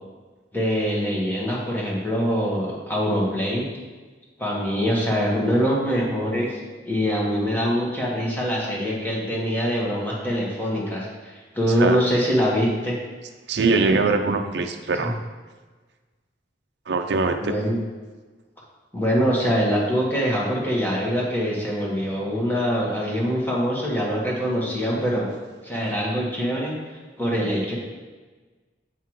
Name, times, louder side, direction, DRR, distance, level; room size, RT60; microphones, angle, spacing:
voice 1, 0.5-3.7 4.4-6.6 6.8-13.0 15.0-15.1 17.4-17.8 18.9-25.3 25.6-26.7 27.2-27.8, equal, 10° left, -4 dB, 1.4 m, -24 dB
voice 2, 13.5-15.2 16.9-17.5, right 3 dB, 65° right, 5 dB, 0.5 m, -22 dB
7.5 x 5.7 x 3.1 m, 1.3 s
head